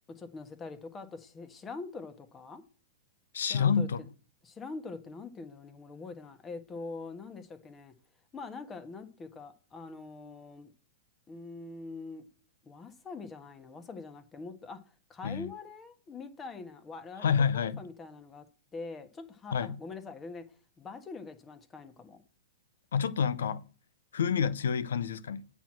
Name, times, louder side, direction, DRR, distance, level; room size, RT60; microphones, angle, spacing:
voice 1, 0.1-2.6 3.5-4.1 4.4-7.9 8.3-10.7 11.3-12.2 12.6-14.8 15.1-18.4 18.7-20.4 20.8-22.2, left 3 dB, 20° left, 1.4 m, -44 dB
voice 2, 3.3-4.0 15.2-15.5 17.2-17.8 19.5-19.8 22.9-23.7 24.1-25.5, left 7 dB, 75° left, 0.6 m, -28 dB
8.9 x 4.6 x 7.5 m
hypercardioid pair, 105°, 0 cm